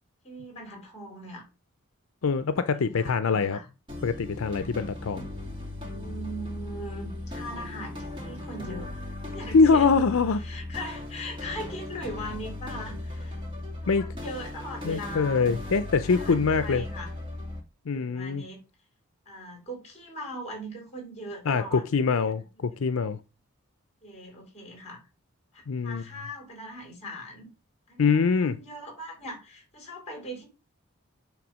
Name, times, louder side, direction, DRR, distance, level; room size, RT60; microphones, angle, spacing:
voice 1, 0.2-1.5 2.7-3.7 5.9-9.0 9.3-10.1 10.4-13.4 13.8-15.6 16.0-17.1 17.9-18.7 19.3-21.8 22.3-22.8 24.0-25.0 25.5-27.5 27.9-30.4, equal, 30° left, 4.3 m, -40 dB
voice 2, 2.2-3.6 4.0-5.3 9.5-10.4 13.9-14.0 14.8-16.8 17.9-18.4 21.5-23.2 25.7-26.0 28.0-28.6, left 5 dB, 75° left, 0.5 m, -24 dB
sound 1, 3.9-17.6, left 1 dB, 20° right, 2.4 m, -37 dB
8.9 x 3.6 x 6.2 m
head